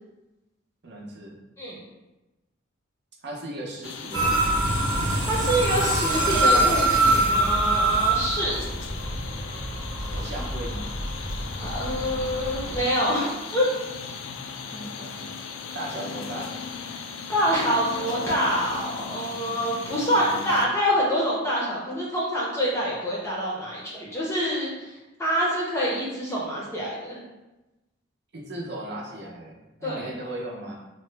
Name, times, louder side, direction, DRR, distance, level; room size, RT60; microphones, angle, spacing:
voice 1, 0.8-1.4 3.2-4.6 10.1-10.9 14.7-15.3 15.7-16.5 28.3-30.7, right 1 dB, 55° right, -1 dB, 0.6 m, -37 dB
sound 1, 3.8-20.7, left 5 dB, 75° left, 0.3 m, -38 dB
sound 2, 4.1-12.8, right 2 dB, 20° right, 0.8 m, -25 dB
voice 2, 5.2-8.7 11.6-13.7 17.3-27.2 29.8-30.1, equal, 15° left, -5 dB, 0.6 m, -26 dB
3.0 x 2.1 x 3.2 m, 1.0 s
head